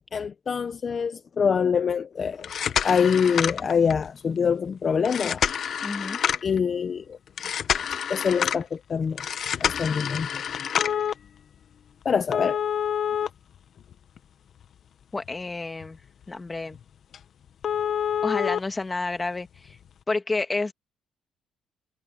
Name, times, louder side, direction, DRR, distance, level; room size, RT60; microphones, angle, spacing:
voice 1, 0.1-2.5 2.8-5.4 6.4-7.2 8.1-9.2 9.6-10.4 12.0-12.6, left 6 dB, 45° left, 1.0 m, -25 dB
sound 1, 2.3-4.1 5.0-6.6 7.4-8.6 9.2-11.1 12.3-14.2 14.6-14.7 15.3-15.4 15.8-16.0 16.2-16.3 16.7-16.8 17.1-17.2 17.6-18.6 19.7-19.8, left 8 dB, 60° left, 1.3 m, -27 dB
voice 2, 5.8-6.2 15.1-16.0 16.3-16.8 18.2-19.8 20.1-20.7, left 3 dB, 25° left, 2.1 m, -30 dB
cardioid pair, 90°, 0 cm